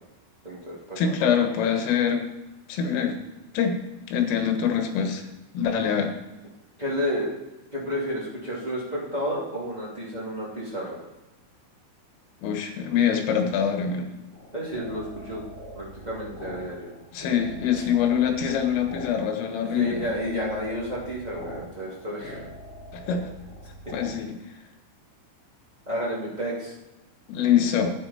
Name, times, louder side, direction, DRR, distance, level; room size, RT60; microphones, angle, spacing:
voice 1, 0.4-1.3 6.8-7.3 7.7-11.0 14.5-15.4 15.7-16.9 19.7-22.4 23.8-23.9 25.8-26.7, equal, 70° right, -7 dB, 0.4 m, -31 dB
voice 2, 1.0-2.2 2.7-3.2 3.6-3.8 4.1-5.3 5.5-6.2 12.4-14.1 17.1-20.1 22.9-23.3 23.9-24.3 27.3-27.9, left 8 dB, 90° left, 5 dB, 4.0 m, -24 dB
sound 1, 14.3-24.1, equal, 25° left, 3.0 m, -42 dB
11.5 x 9.7 x 4.2 m, 1.0 s
omnidirectional pair, 5.7 m